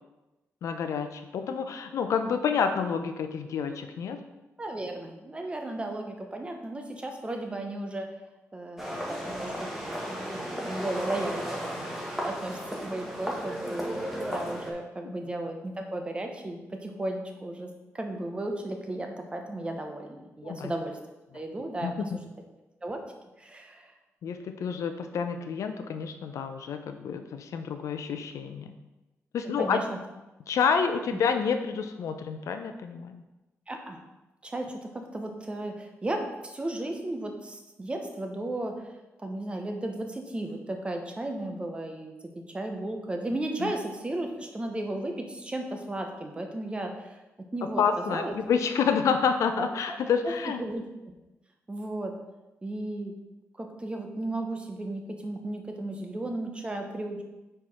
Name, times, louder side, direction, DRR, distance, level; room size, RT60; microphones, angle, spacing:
voice 1, 0.6-4.2 15.0-15.1 20.4-20.7 21.8-21.9 24.2-28.7 29.3-29.8 30.5-33.2 43.6-43.7 47.8-50.6, left 6 dB, 80° left, 7 dB, 0.6 m, -28 dB
voice 2, 4.6-8.1 8.5-9.7 10.0-12.0 12.2-21.0 21.3-22.2 22.8-23.0 23.4-23.9 29.6-30.0 33.7-34.0 34.4-38.9 39.2-47.2 47.5-48.3 49.6-50.0 50.4-51.1 51.7-52.1 52.6-53.1 53.6-57.2, right 1 dB, 20° right, 3 dB, 0.9 m, -35 dB
sound 1, 8.8-14.7, equal, 5° right, 1.3 m, -34 dB
4.7 x 4.5 x 5.4 m, 1.0 s
cardioid pair, 105°, 5 cm